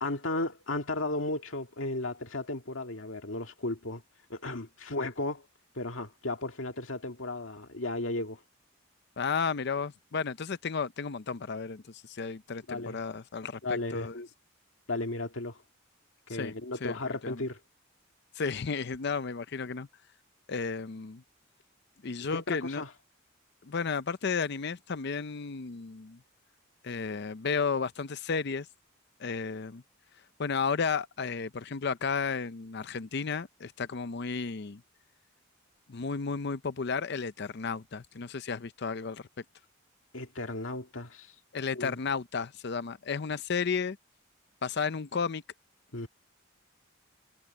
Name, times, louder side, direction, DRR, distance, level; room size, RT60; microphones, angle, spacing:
voice 1, 0.0-4.0 4.3-5.5 5.7-8.4 12.7-13.0 13.6-14.3 14.9-15.6 16.3-17.6 22.3-22.9 40.1-41.3 41.7-42.0 45.9-46.1, left 2 dB, 75° left, 2.1 m, -34 dB
voice 2, 9.2-14.2 16.3-16.5 16.8-17.4 18.4-19.9 20.5-21.2 22.0-22.8 23.6-26.2 26.8-28.7 29.2-29.8 30.4-34.8 35.9-39.2 41.5-44.0 44.6-45.4, left 5 dB, 55° left, 0.6 m, -33 dB
head